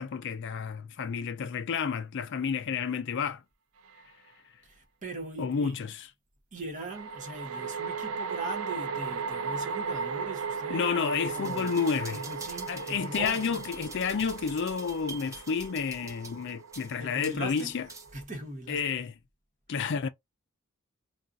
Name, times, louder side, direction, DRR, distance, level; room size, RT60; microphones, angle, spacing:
voice 1, 0.0-3.4 5.4-6.0 10.7-12.2 12.7-17.9 18.7-19.1 19.7-20.1, left 6 dB, 55° left, 0.4 m, -30 dB
sound 1, 3.9-4.0 6.9-18.2, right 5 dB, 70° right, 0.4 m, -37 dB
voice 2, 4.6-5.7 6.5-10.9 11.3-11.8 12.1-13.6 17.0-17.7 18.1-19.0, right 2 dB, 35° right, 1.0 m, -40 dB
sound 2, 11.3-18.3 18.7-18.8, right 3 dB, 15° right, 0.5 m, -46 dB
2.4 x 2.3 x 3.9 m
head